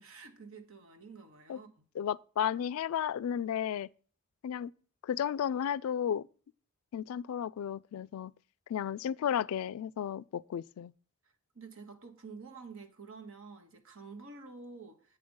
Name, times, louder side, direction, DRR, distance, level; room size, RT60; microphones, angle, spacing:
voice 1, 0.0-1.8 11.5-15.2, right 4 dB, 70° right, 1.2 m, -49 dB
voice 2, 2.0-3.9 4.4-4.7 5.0-6.3 6.9-8.3 8.7-10.9, left 9 dB, 80° left, 0.3 m, -33 dB
8.5 x 5.1 x 5.4 m
head